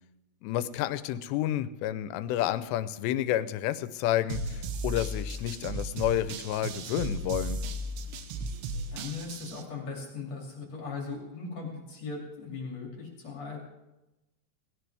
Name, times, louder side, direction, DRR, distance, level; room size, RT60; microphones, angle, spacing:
voice 1, 0.4-7.6, left 12 dB, 85° left, 13 dB, 2.8 m, -30 dB
sound 1, 4.3-9.6, right 2 dB, 85° right, 3.2 m, -35 dB
voice 2, 8.9-13.6, left 4 dB, 45° left, -1 dB, 3.4 m, -38 dB
18.0 x 17.0 x 3.4 m, 1.0 s
omnidirectional pair, 4.9 m